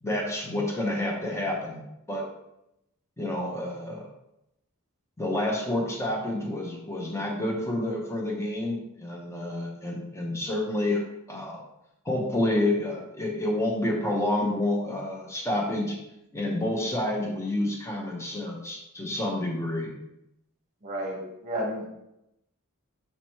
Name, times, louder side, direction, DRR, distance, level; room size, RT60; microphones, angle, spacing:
voice 1, 0.0-2.3 3.2-4.1 5.2-11.0 11.3-11.6 12.0-16.0 16.3-19.9, left 1 dB, 10° left, -1 dB, 0.8 m, -29 dB
voice 2, 20.8-21.9, right 1 dB, 30° right, 0 dB, 1.0 m, -32 dB
5.4 x 2.9 x 3.0 m, 0.85 s
head